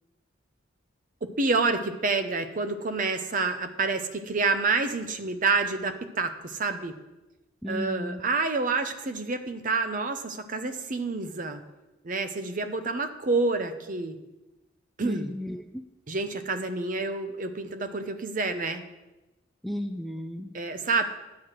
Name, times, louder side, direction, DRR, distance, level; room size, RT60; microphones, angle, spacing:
voice 1, 1.2-6.9 7.7-11.6 12.0-14.2 15.0-15.3 16.1-18.8 20.5-21.0, right 3 dB, 45° right, 9 dB, 0.7 m, -28 dB
voice 2, 7.6-8.2 15.0-15.8 19.6-20.5, equal, ahead, 6 dB, 0.3 m, -34 dB
9.5 x 7.4 x 4.8 m, 1.0 s
head